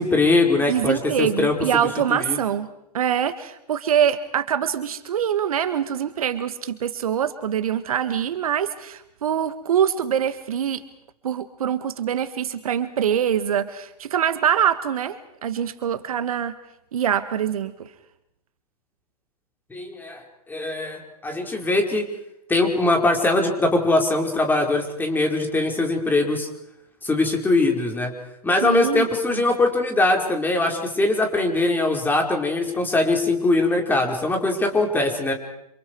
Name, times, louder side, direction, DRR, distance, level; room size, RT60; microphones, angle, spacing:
voice 1, 0.0-1.5 2.1-2.4 19.7-20.2 20.5-22.1 22.5-26.5 27.0-28.1 28.4-35.3, left 2 dB, 10° left, 3 dB, 5.0 m, -21 dB
voice 2, 0.6-2.7 2.9-10.8 11.2-16.5 16.9-17.9 28.6-29.4, right 9 dB, 65° right, 11 dB, 1.8 m, -24 dB
30.0 x 27.0 x 4.8 m, 0.80 s
figure-of-eight pair, 110°, 20 cm